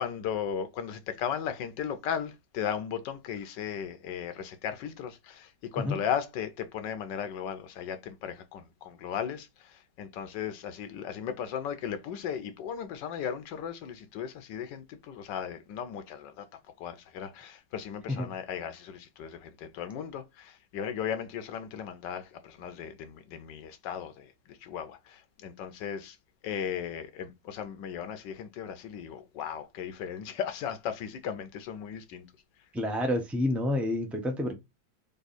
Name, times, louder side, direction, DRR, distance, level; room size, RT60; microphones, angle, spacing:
voice 1, 0.0-16.5 16.8-26.2 26.4-32.3, left 8 dB, 80° left, 1.3 m, -36 dB
voice 2, 32.7-34.5, left 1 dB, ahead, 0.4 m, -29 dB
3.5 x 3.5 x 4.1 m
omnidirectional pair, 1.9 m